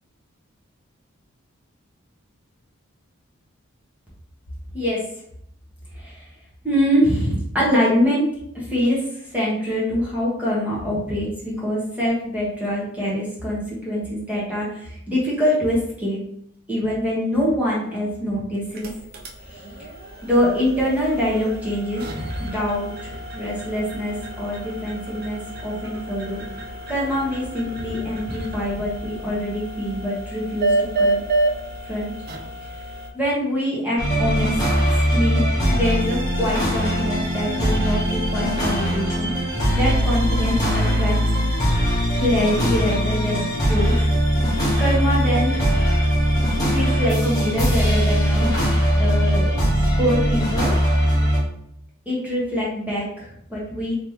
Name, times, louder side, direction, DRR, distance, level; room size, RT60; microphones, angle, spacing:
voice 1, 4.7-5.1 5.9-6.2 6.6-8.2 8.5-9.0 9.3-16.2 16.7-18.9 19.5-19.6 20.2-26.4 26.9-31.2 31.8-32.1 33.1-34.5 35.1-39.3 39.7-41.1 42.2-43.9 44.8-45.6 46.7-48.5 48.9-49.5 49.9-50.7 52.1-53.9, equal, 5° right, -6 dB, 1.1 m, -24 dB
sound 1, 18.6-33.1, right 2 dB, 45° right, 0.5 m, -30 dB
sound 2, 34.0-51.4, equal, 15° left, 1.1 m, -20 dB
3.5 x 3.0 x 3.0 m, 0.71 s
head